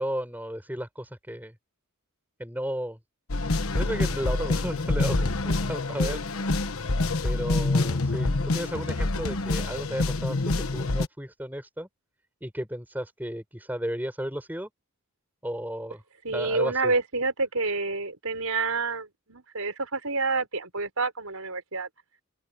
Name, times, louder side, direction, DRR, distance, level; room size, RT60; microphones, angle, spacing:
voice 1, 0.0-1.5 2.4-3.0 3.7-6.2 7.2-11.9 12.4-14.7 15.4-16.0 16.3-16.9, equal, 10° right, 4.6 m, -34 dB
sound 1, 3.3-11.1, left 2 dB, 85° left, 1.2 m, -26 dB
voice 2, 16.2-21.9, right 3 dB, 90° right, 5.9 m, -28 dB
open air
head